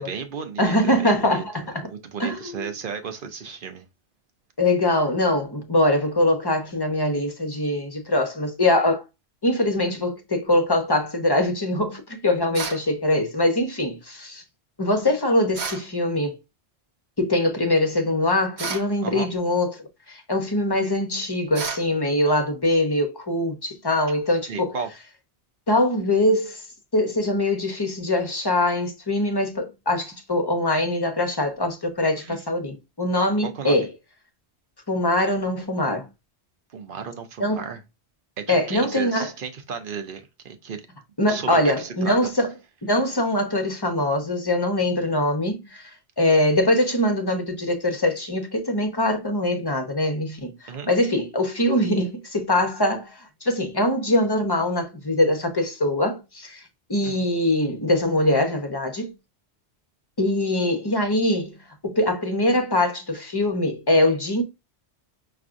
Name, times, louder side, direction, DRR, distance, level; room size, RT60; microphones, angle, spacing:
voice 1, 0.0-1.4 1.8-3.8 19.0-19.3 24.5-24.9 32.2-32.4 33.4-33.9 36.7-37.8 38.4-40.8 41.3-42.1 50.7-50.9 57.0-57.2, right 6 dB, 55° right, 0.8 m, -34 dB
voice 2, 0.6-1.9 2.2-2.7 4.6-9.0 9.4-14.4 14.8-16.4 17.2-19.8 20.1-24.7 25.7-26.6 26.9-33.9 34.9-36.1 37.4-37.6 38.5-39.3 41.2-42.5 42.9-45.9 46.2-50.5 50.9-53.1 53.4-56.6 56.9-59.1 60.2-61.6 61.8-64.4, left 1 dB, 25° left, 0.7 m, -23 dB
sound 1, 12.5-12.9 15.5-15.9 18.6-18.9 21.5-21.9, right 5 dB, 70° right, 1.1 m, -31 dB
5.8 x 2.5 x 2.5 m
omnidirectional pair, 1.1 m